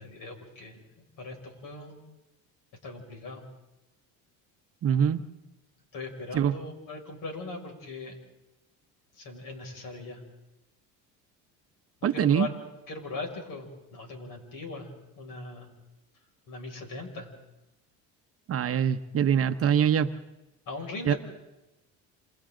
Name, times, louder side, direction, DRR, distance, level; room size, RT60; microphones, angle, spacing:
voice 1, 0.0-2.0 2.8-3.5 5.9-8.2 9.2-10.2 12.0-12.5 12.9-15.7 16.5-17.3 20.7-21.2, left 3 dB, 60° left, 2 dB, 6.2 m, -39 dB
voice 2, 4.8-5.3 6.3-6.5 12.0-12.5 18.5-20.1 21.1-21.2, right 8 dB, 40° right, 9 dB, 0.9 m, -24 dB
28.0 x 27.5 x 3.9 m, 0.99 s
cardioid pair, 120°, 36 cm